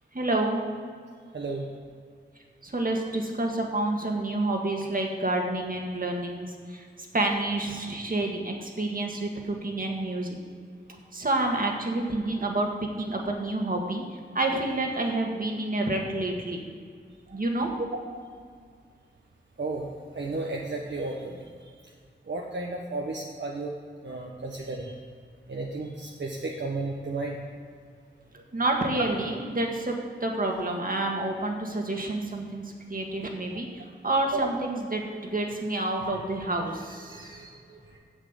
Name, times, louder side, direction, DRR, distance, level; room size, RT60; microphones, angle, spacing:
voice 1, 0.1-0.6 2.6-6.5 6.7-6.8 7.1-10.3 11.1-12.7 13.0-14.0 14.3-16.6 17.3-17.7 28.3-32.6 32.9-33.7 34.0-35.0 35.3-37.8, right 2 dB, 45° right, 1 dB, 1.7 m, -28 dB
voice 2, 1.3-1.7 17.3-17.4 19.6-21.7 22.3-23.7 24.0-25.0 25.5-27.4 34.3-34.5 37.1-37.5 37.9-38.0, right 2 dB, 65° right, -1 dB, 1.0 m, -33 dB
7.5 x 7.4 x 8.1 m, 2.1 s
wide cardioid pair, 85°, 19 cm